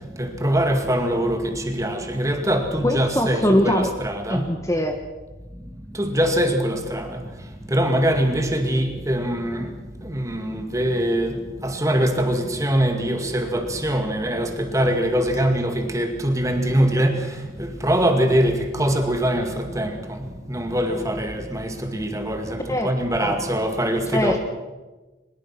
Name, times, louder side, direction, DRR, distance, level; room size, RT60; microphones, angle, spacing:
voice 1, 0.2-4.5 5.9-7.2 7.7-9.7 10.0-20.2 20.5-24.4, equal, 15° right, 5 dB, 2.3 m, -23 dB
voice 2, 2.8-3.9 4.3-5.0 22.7-22.9 23.2-23.4 24.1-24.4, left 1 dB, 15° left, 5 dB, 1.4 m, -21 dB
23.0 x 21.5 x 6.0 m, 1.2 s
head